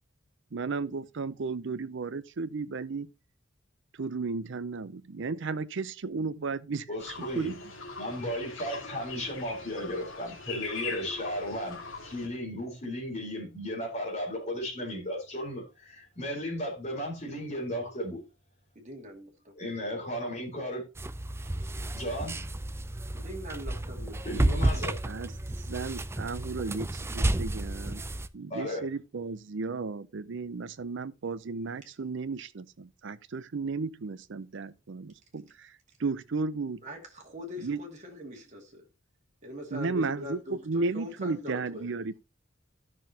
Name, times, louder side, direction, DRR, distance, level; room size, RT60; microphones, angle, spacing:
voice 1, 0.5-3.1 4.0-6.9 7.4-7.6 25.0-25.3 25.6-28.0 28.3-35.7 36.0-36.8 37.6-37.8 39.7-42.2, right 4 dB, 65° right, 0.6 m, -34 dB
voice 2, 6.9-7.5 8.0-18.2 19.6-20.9 21.9-22.4 24.2-25.0 28.5-28.8, equal, 35° left, 4.0 m, -35 dB
sound 1, 7.0-12.3, left 4 dB, 75° left, 2.4 m, -41 dB
voice 3, 18.8-19.5 21.4-21.7 23.1-24.7 36.6-38.8 39.4-41.9, left 1 dB, 40° right, 2.3 m, -42 dB
sound 2, 21.0-28.3, right 1 dB, 15° right, 0.4 m, -31 dB
14.0 x 6.1 x 2.9 m
head